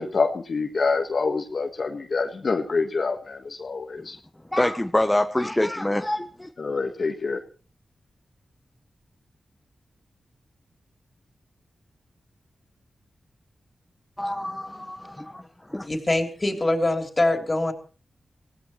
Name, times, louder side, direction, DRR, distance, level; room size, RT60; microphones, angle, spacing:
voice 1, 0.0-4.2 6.6-7.4, left 4 dB, 60° left, 4 dB, 1.5 m, -26 dB
voice 2, 4.5-6.5 14.2-15.4 15.7-15.9, left 1 dB, 15° left, 6 dB, 1.0 m, -25 dB
voice 3, 15.8-17.7, left 2 dB, 30° left, 4 dB, 3.5 m, -23 dB
24.5 x 16.5 x 3.1 m, 0.37 s
cardioid pair, 45°, 0 cm